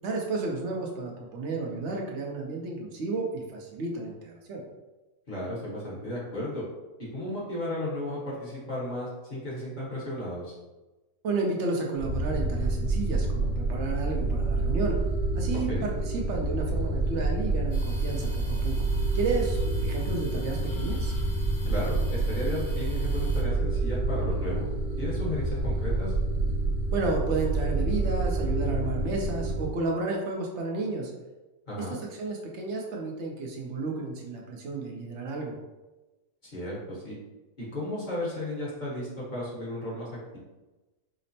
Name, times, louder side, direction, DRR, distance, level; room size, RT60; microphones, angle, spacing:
voice 1, 0.0-4.6 11.2-15.0 15.3-18.7 19.1-21.1 26.9-31.1 31.8-35.6, right 3 dB, 60° right, 0 dB, 0.8 m, -32 dB
voice 2, 5.3-6.6 7.1-10.5 15.7-15.9 21.6-24.7 25.0-26.1 31.7-32.0 36.5-37.2 37.6-40.1, left 1 dB, 35° left, -6 dB, 1.1 m, -34 dB
sound 1, 12.0-29.7, right 2 dB, 90° right, 1.1 m, -28 dB
sound 2, 17.7-23.4, left 2 dB, 80° left, 2.1 m, -43 dB
5.1 x 2.0 x 2.7 m, 1.1 s
omnidirectional pair, 1.6 m